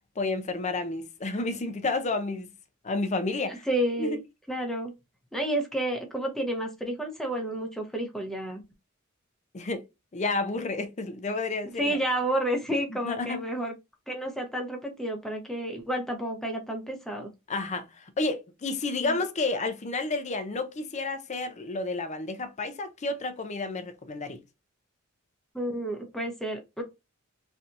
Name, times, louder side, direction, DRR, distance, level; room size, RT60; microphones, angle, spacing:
voice 1, 0.2-2.5 2.8-3.7 4.0-4.2 9.5-9.8 10.1-12.0 13.0-13.4 17.5-24.4, left 3 dB, 35° left, 0.5 m, -31 dB
voice 2, 3.5-4.2 4.5-4.9 5.3-8.6 11.6-13.7 14.1-17.3 19.0-19.2 25.5-26.8, right 1 dB, ahead, 0.8 m, -30 dB
3.3 x 2.7 x 2.5 m
head